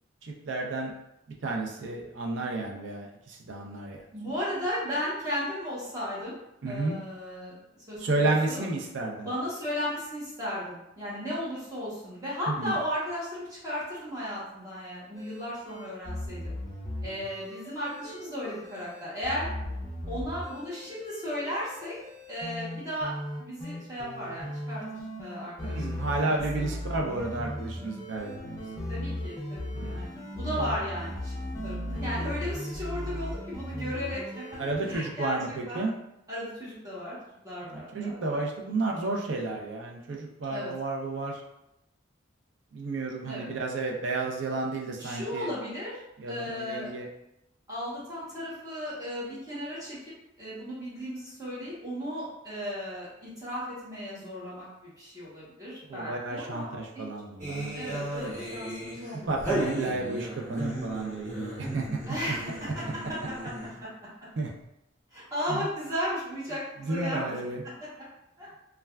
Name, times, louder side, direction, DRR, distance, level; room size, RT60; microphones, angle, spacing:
voice 1, 0.2-0.9 1.4-4.0 6.6-7.0 8.0-9.3 12.5-12.7 25.7-28.9 29.7-30.0 30.5-30.6 34.6-35.9 37.7-41.4 42.7-45.5 46.2-47.1 55.9-57.9 59.3-62.0 62.3-62.4 64.4-64.5 65.5-65.7 66.8-67.6, right 2 dB, 65° right, 0 dB, 0.5 m, -32 dB
voice 2, 4.1-6.4 6.6-7.5 7.9-8.6 9.1-16.5 17.0-19.5 20.1-22.0 22.3-23.1 23.4-24.8 25.2-26.7 28.9-34.4 34.9-35.4 35.7-35.8 36.3-38.4 40.5-40.7 43.3-43.5 45.0-46.0 46.3-46.9 47.7-50.0 50.4-57.1 57.7-59.3 60.0-60.2 62.1-63.3 65.1-67.7 68.4-68.5, equal, 20° right, -9 dB, 0.9 m, -35 dB
sound 1, 15.1-35.0, left 1 dB, 15° left, 0.4 m, -37 dB
sound 2, 57.4-63.9, right 1 dB, 45° right, 1.1 m, -35 dB
3.2 x 2.3 x 2.2 m, 0.84 s
head